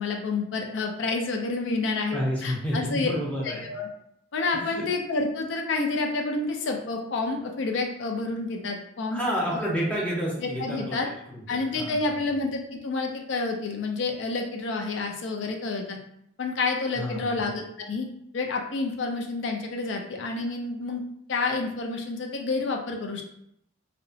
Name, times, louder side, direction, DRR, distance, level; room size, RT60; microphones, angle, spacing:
voice 1, 0.0-3.1 3.4-3.9 4.3-9.2 9.6-9.7 10.4-11.1 11.5-16.0 16.4-18.1 18.3-21.0 21.3-23.2, left 3 dB, 65° left, 2 dB, 0.4 m, -29 dB
voice 2, 2.1-3.7 4.5-4.8 9.1-12.2 16.9-17.4, equal, 5° left, -4 dB, 0.5 m, -30 dB
2.8 x 2.1 x 2.6 m, 0.74 s
head